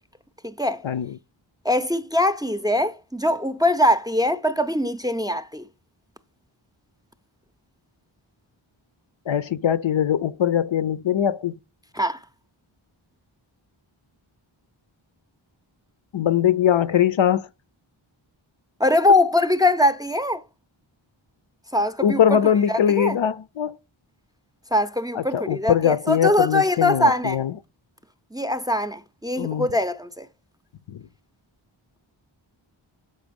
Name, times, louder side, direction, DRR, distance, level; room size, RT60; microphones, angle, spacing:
voice 1, 0.4-0.8 1.6-5.6 11.9-12.2 18.8-20.4 21.7-22.4 22.7-23.2 24.7-27.4 28.3-30.3, left 1 dB, 10° right, 0.5 m, -22 dB
voice 2, 9.3-11.6 16.1-17.5 22.0-23.7 25.1-27.5 29.4-29.7 30.9-31.0, left 9 dB, 70° left, 0.6 m, -21 dB
6.7 x 5.1 x 5.2 m
wide cardioid pair, 40°, 49 cm